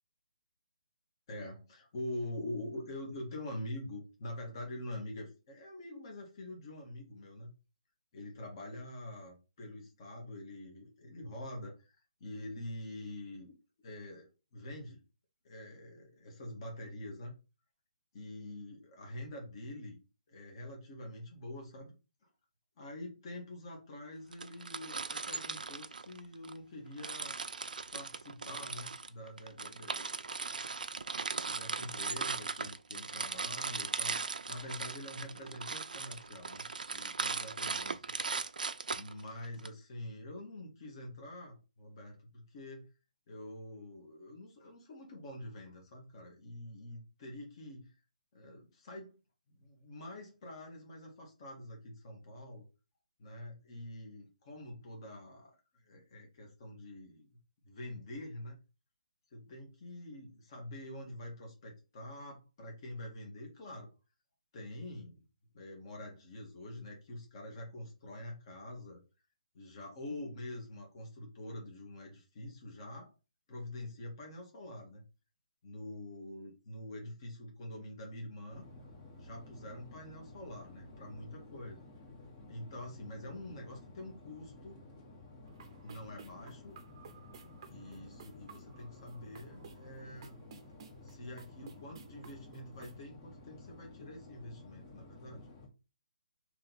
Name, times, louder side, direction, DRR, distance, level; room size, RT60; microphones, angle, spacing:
voice 1, 1.3-7.5 8.1-11.9 12.2-13.5 13.8-14.2 14.5-15.0 15.4-17.3 18.1-20.0 20.3-21.9 22.8-27.4 27.9-30.4 31.5-37.9 38.9-42.9 43.3-47.9 48.3-49.2 49.5-52.6 53.2-57.3 57.6-58.6 59.3-63.9 64.5-65.2 65.5-69.0 69.5-73.1 73.5-75.0 75.6-78.6 79.2-81.9 82.5-84.8 85.8-86.7 87.7-90.4 91.0-95.5, left 1 dB, 35° left, 1 dB, 1.4 m, -45 dB
sound 1, 24.3-26.6 27.0-39.7, right 4 dB, 90° right, 0.4 m, -38 dB
sound 2, 78.5-95.7, left 2 dB, 20° left, 0.8 m, -53 dB
sound 3, 85.5-93.0, right 6 dB, 35° right, 0.6 m, -57 dB
3.1 x 3.0 x 4.1 m, 0.30 s
hypercardioid pair, 165°, 4 cm